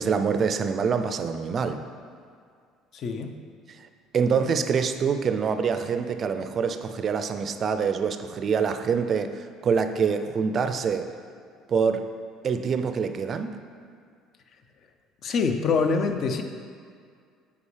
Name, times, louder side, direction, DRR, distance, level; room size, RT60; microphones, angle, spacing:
voice 1, 0.0-1.8 3.7-3.8 4.1-11.1 11.7-12.0 12.4-13.6, right 6 dB, 40° right, 9 dB, 0.4 m, -25 dB
voice 2, 2.9-3.4 15.2-16.4, left 5 dB, 50° left, 6 dB, 0.5 m, -25 dB
8.3 x 5.0 x 3.3 m, 2.2 s
cardioid pair, 110°, 0 cm